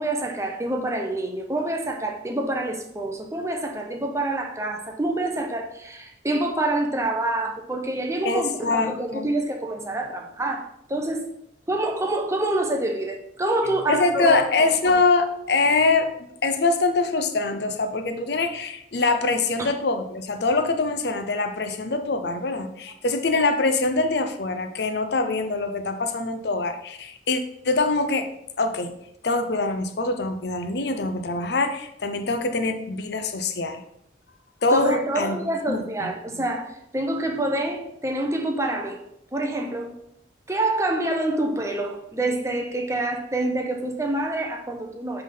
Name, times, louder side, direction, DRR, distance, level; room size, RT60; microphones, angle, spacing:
voice 1, 0.0-10.6 10.9-11.2 11.7-14.4 19.6-19.7 34.7-39.0 39.3-39.9 40.5-45.2, right 1 dB, 15° right, 2 dB, 0.7 m, -27 dB
voice 2, 8.2-9.3 13.9-16.1 16.4-28.3 28.6-28.9 29.2-33.8 34.6-35.4 35.7-36.1, left 3 dB, 60° left, 7 dB, 0.6 m, -24 dB
9.2 x 3.5 x 3.8 m, 0.77 s
head